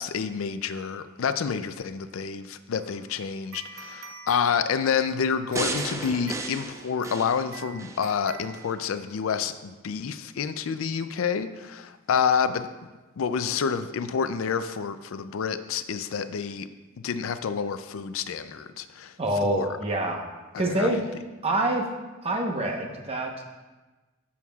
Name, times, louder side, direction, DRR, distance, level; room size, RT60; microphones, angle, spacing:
voice 1, 0.0-12.7 13.2-16.7 17.0-19.1 19.4-19.7 20.5-20.9, left 6 dB, 85° left, 11 dB, 0.4 m, -28 dB
sound 1, 2.7-9.3, right 5 dB, 80° right, 0.7 m, -47 dB
sound 2, 5.6-8.0 8.5-8.7, right 2 dB, 15° right, 0.5 m, -33 dB
voice 2, 19.2-20.2 20.6-21.0 21.4-21.9 22.2-23.4, right 1 dB, 30° right, 2 dB, 0.9 m, -26 dB
10.5 x 7.1 x 2.3 m, 1.2 s
head